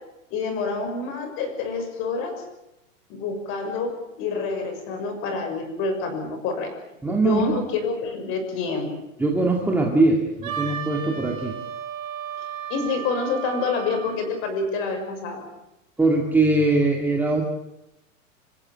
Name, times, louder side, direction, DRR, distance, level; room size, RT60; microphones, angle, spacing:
voice 1, 0.3-2.4 3.1-6.7 7.1-8.9 12.7-15.5, left 4 dB, 30° left, 7 dB, 6.4 m, -27 dB
voice 2, 7.0-7.6 9.2-11.5 16.0-17.4, right 2 dB, 5° right, 0 dB, 2.3 m, -21 dB
Wind instrument woodwind instrument, 10.4-14.3, right 9 dB, 85° right, 6.4 m, -34 dB
27.5 x 15.5 x 8.8 m, 0.90 s
supercardioid pair, 160°, 40 cm